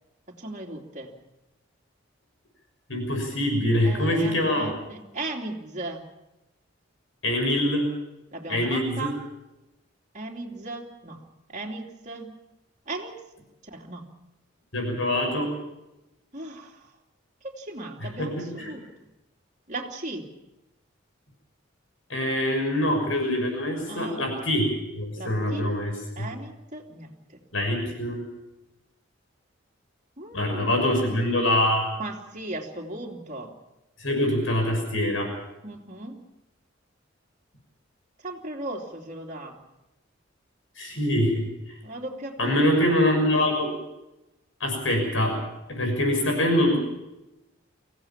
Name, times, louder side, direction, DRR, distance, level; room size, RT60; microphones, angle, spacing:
voice 1, 0.3-1.1 3.8-6.0 8.3-9.2 10.1-11.2 11.5-12.3 12.9-13.1 13.6-14.0 16.3-16.9 17.4-18.8 19.7-20.3 23.9-24.3 25.2-25.7 26.2-27.4 30.2-30.7 32.0-33.5 35.6-36.2 38.2-39.6 40.9-41.0 41.8-42.6, right 2 dB, 40° right, -1 dB, 2.9 m, -37 dB
voice 2, 2.9-4.7 7.2-7.9 8.5-9.1 14.7-15.5 18.2-18.7 22.1-24.7 24.9-26.3 27.5-28.2 30.3-31.9 34.0-35.3 40.8-41.5 42.4-43.7 44.6-45.4 45.7-46.8, left 1 dB, 90° left, 3 dB, 6.3 m, -24 dB
24.0 x 16.5 x 7.3 m, 0.95 s
head